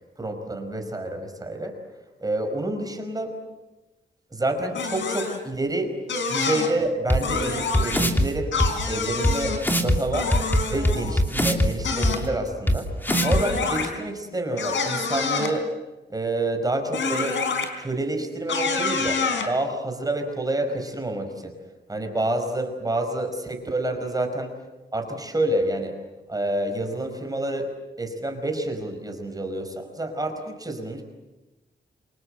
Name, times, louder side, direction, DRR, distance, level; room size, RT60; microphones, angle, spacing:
voice 1, 0.2-1.7 2.2-3.3 4.3-5.9 6.3-8.5 8.9-10.3 10.7-12.9 13.2-15.7 16.1-17.4 17.8-21.5 21.9-24.5 24.9-26.0 26.3-27.7 28.0-31.0, right 1 dB, 20° right, 4 dB, 5.0 m, -28 dB
sound 1, 4.7-5.4 6.1-6.7 7.2-8.0 8.5-9.6 10.1-11.2 11.8-12.2 13.1-13.9 14.6-15.5 16.9-17.7 18.5-19.5, left 4 dB, 90° left, 4.5 m, -27 dB
sound 2, 7.1-7.2 7.7-8.3 8.6-8.7 9.2-9.3 9.6-10.0 10.3-11.7 12.0-12.1 12.7-12.8 13.0-13.4, equal, 10° left, 3.0 m, -20 dB
27.5 x 26.0 x 7.9 m, 1.1 s
wide cardioid pair, 125°, 19 cm